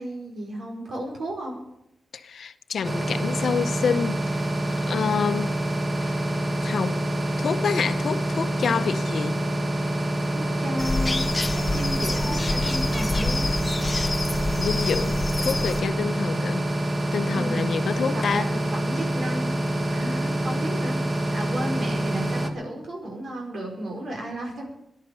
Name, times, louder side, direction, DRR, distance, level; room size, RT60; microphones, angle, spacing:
voice 1, 0.0-1.6 10.3-13.5 17.3-17.6 18.1-19.5 19.9-21.0 21.3-24.7, right 1 dB, 75° right, 0 dB, 5.1 m, -33 dB
voice 2, 2.1-4.5 4.9-5.6 6.0-6.2 6.6-7.0 7.4-9.4 14.6-16.7 17.1-18.5, left 6 dB, 80° left, 11 dB, 0.8 m, -27 dB
sound 1, 2.8-22.5, right 1 dB, 20° right, 1.5 m, -26 dB
sound 2, 10.8-15.8, left 2 dB, 20° left, 1.2 m, -28 dB
18.5 x 11.0 x 5.4 m, 0.79 s
wide cardioid pair, 125°, 0 cm